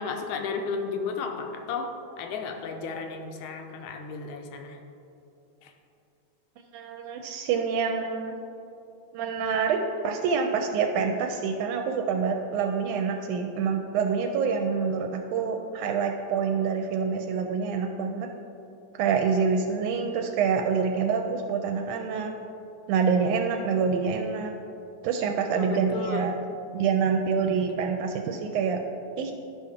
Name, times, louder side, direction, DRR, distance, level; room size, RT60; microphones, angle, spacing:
voice 1, 0.0-4.8 5.6-5.7 25.5-26.3, left 4 dB, 75° left, 4 dB, 1.9 m, -33 dB
voice 2, 6.7-8.4 9.1-18.3 18.9-22.3 22.9-24.5 25.0-26.3 26.7-28.8 29.2-29.3, right 6 dB, 85° right, 3 dB, 2.0 m, -26 dB
12.0 x 5.6 x 3.6 m, 2.8 s
omnidirectional pair, 3.5 m